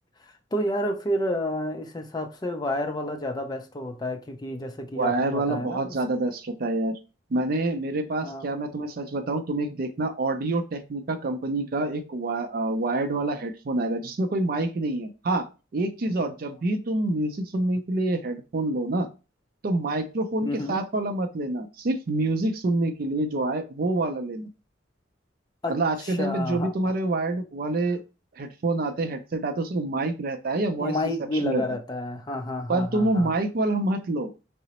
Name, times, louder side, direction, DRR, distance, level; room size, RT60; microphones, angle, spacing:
voice 1, 0.2-6.0 8.2-8.5 20.4-20.8 25.6-25.7 26.0-26.7 30.8-33.3, left 1 dB, 20° left, 0.4 m, -30 dB
voice 2, 5.0-7.0 7.3-15.5 15.7-19.1 19.6-24.5 25.7-28.0 28.4-30.9 31.4-31.6 32.7-34.3, right 2 dB, 50° right, 0.4 m, -27 dB
3.7 x 2.0 x 2.9 m
head